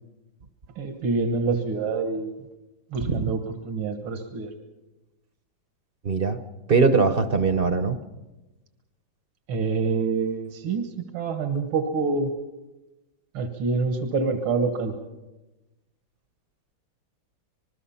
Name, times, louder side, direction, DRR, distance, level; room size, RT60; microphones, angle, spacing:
voice 1, 0.8-2.4 2.9-4.5 9.5-12.3 13.3-14.9, right 4 dB, 85° right, 7 dB, 2.2 m, -26 dB
voice 2, 6.0-6.4 6.7-8.0, right 4 dB, 50° right, 10 dB, 0.6 m, -21 dB
26.5 x 20.5 x 5.7 m, 1.1 s
omnidirectional pair, 2.2 m